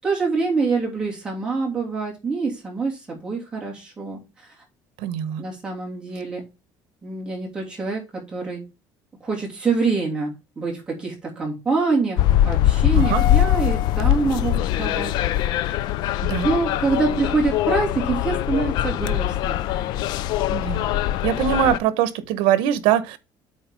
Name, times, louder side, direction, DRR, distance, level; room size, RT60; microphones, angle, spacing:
voice 1, 0.0-4.5 5.4-6.4 7.0-8.6 9.2-15.1 16.4-20.0, right 4 dB, 10° right, 2.9 m, -25 dB
voice 2, 5.0-5.4 12.9-13.3 16.2-16.5 20.5-20.9 21.2-23.2, right 10 dB, 80° right, 1.0 m, -22 dB
sound 1, 12.2-21.8, left 12 dB, 55° left, 0.5 m, -22 dB
8.8 x 4.1 x 5.2 m
cardioid pair, 170°, 9 cm